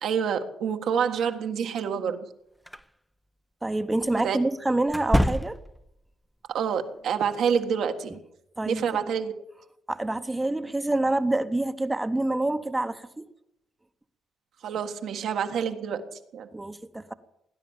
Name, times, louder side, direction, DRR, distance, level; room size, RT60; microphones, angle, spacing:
voice 1, 0.0-2.2 4.2-4.4 6.5-8.2 8.7-9.4 14.6-16.5, right 7 dB, 70° right, 6 dB, 1.6 m, -27 dB
sound 1, 2.7-2.8 4.9-5.9, equal, ahead, 0.7 m, -25 dB
voice 2, 3.6-5.6 8.6-9.0 9.9-13.3 16.5-17.1, right 2 dB, 15° right, 9 dB, 1.0 m, -27 dB
18.0 x 10.0 x 7.2 m, 0.81 s
cardioid pair, 80°, 0 cm